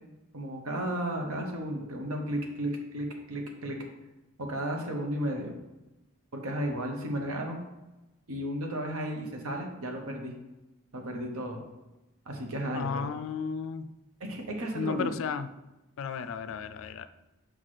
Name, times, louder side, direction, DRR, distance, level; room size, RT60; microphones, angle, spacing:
voice 1, 0.3-3.8 4.4-5.5 6.3-7.6 8.3-10.3 10.9-11.6 12.3-13.1 14.3-15.1, right 1 dB, 80° right, 2 dB, 1.0 m, -33 dB
voice 2, 12.7-13.9 14.7-15.5 16.0-17.1, left 6 dB, 65° left, 11 dB, 0.3 m, -33 dB
5.8 x 5.0 x 3.3 m, 1.0 s
head